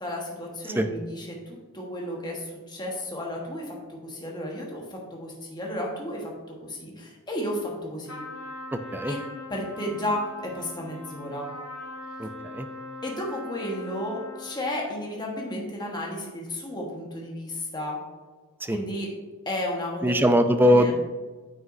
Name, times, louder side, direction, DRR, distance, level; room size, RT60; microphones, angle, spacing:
voice 1, 0.0-3.8 4.0-8.2 9.1-9.2 9.5-11.5 13.0-18.0 18.6-19.1 19.4-20.2 20.6-20.9, left 1 dB, 20° left, -2 dB, 1.3 m, -33 dB
Trumpet, 8.1-14.8, left 2 dB, 85° left, 1.8 m, -41 dB
voice 2, 8.7-9.1 12.2-12.7 18.6-18.8 20.0-20.9, equal, 10° right, 8 dB, 0.4 m, -21 dB
9.0 x 6.1 x 2.7 m, 1.4 s
head